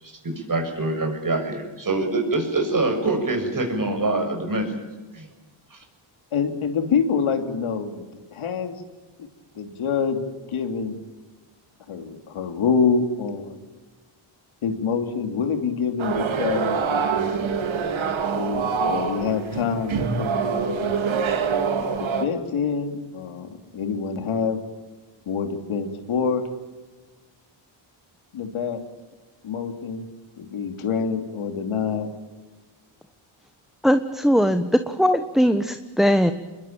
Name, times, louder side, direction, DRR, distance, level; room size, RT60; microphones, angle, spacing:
voice 1, 0.0-4.8 5.1-5.3 5.7-5.8, right 2 dB, 40° right, 5 dB, 6.6 m, -25 dB
voice 2, 6.3-8.8 9.2-9.3 9.5-11.0 11.9-13.5 14.6-17.2 18.3-20.9 22.0-24.6 25.3-26.5 28.3-28.8 29.4-30.1 30.4-32.1, left 6 dB, 80° left, 6 dB, 3.0 m, -26 dB
sound 1, 16.0-22.3, right 5 dB, 70° right, 2.9 m, -25 dB
voice 3, 33.8-36.3, equal, ahead, 9 dB, 1.2 m, -20 dB
25.5 x 21.5 x 8.9 m, 1.3 s
cardioid pair, 85°, 49 cm